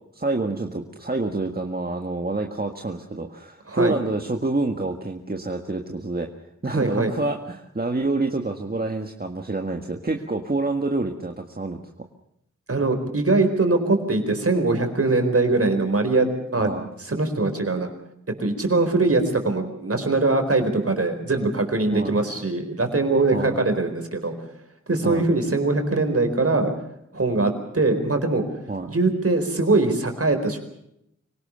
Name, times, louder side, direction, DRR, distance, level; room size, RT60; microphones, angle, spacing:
voice 1, 0.1-6.3 6.6-11.8 16.6-16.9 21.9-22.2 23.3-23.6 25.0-25.2 28.7-28.9, right 2 dB, 30° right, 3 dB, 1.8 m, -27 dB
voice 2, 3.7-4.0 6.7-7.1 12.7-16.7 17.0-17.9 18.4-24.3 24.9-26.7 27.1-28.4 28.9-30.6, right 3 dB, 50° right, 6 dB, 4.4 m, -22 dB
25.0 x 18.0 x 6.9 m, 0.75 s
wide cardioid pair, 55°, 29 cm